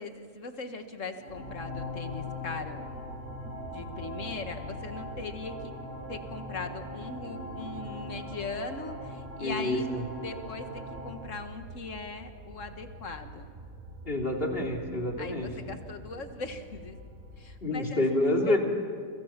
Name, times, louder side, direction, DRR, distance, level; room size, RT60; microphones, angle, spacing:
voice 1, 0.0-2.8 3.7-5.7 6.1-13.5 15.2-17.0 17.4-18.0 18.5-18.6, left 3 dB, 60° left, 7 dB, 2.0 m, -40 dB
sound 1, 1.1-11.1, left 1 dB, 80° right, 5.4 m, -41 dB
sound 2, 1.3-17.6, right 1 dB, 55° right, 2.6 m, -46 dB
voice 2, 9.4-10.0 14.0-15.5 17.6-18.6, left 1 dB, 40° left, 0 dB, 3.3 m, -28 dB
29.0 x 25.5 x 6.0 m, 2.1 s
omnidirectional pair, 1.5 m